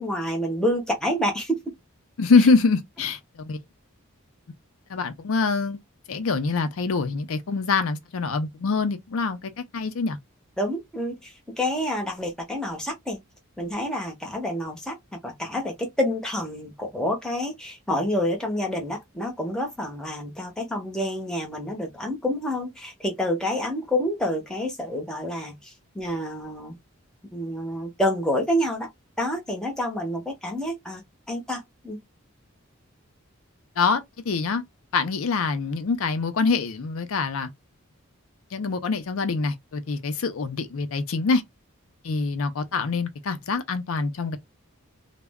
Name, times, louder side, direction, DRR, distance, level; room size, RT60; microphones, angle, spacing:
voice 1, 0.0-1.6 10.6-13.2 13.6-15.0 15.2-26.8 27.3-28.9 29.2-31.0 31.3-32.0, left 1 dB, 5° left, 0.7 m, -28 dB
voice 2, 2.2-3.6 4.9-5.8 6.1-10.2 33.8-34.6 34.9-37.5 38.5-41.4 42.0-44.4, left 4 dB, 70° left, 0.5 m, -24 dB
2.3 x 2.0 x 3.4 m
head